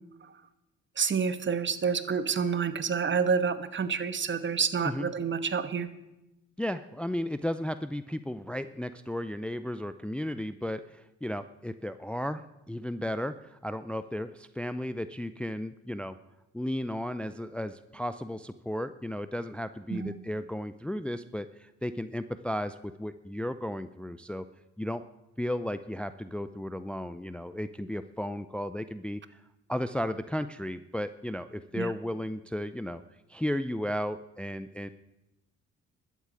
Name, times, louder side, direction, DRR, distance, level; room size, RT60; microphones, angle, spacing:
voice 1, 1.0-5.9 19.9-20.2 31.7-31.9, right 6 dB, 40° right, 12 dB, 1.3 m, -28 dB
voice 2, 6.6-16.2 16.5-24.5 24.8-25.0 25.4-29.4 29.7-33.0 33.3-34.9, left 1 dB, 5° left, 12 dB, 0.5 m, -34 dB
12.5 x 8.4 x 8.8 m, 0.93 s
cardioid pair, 90°, 30 cm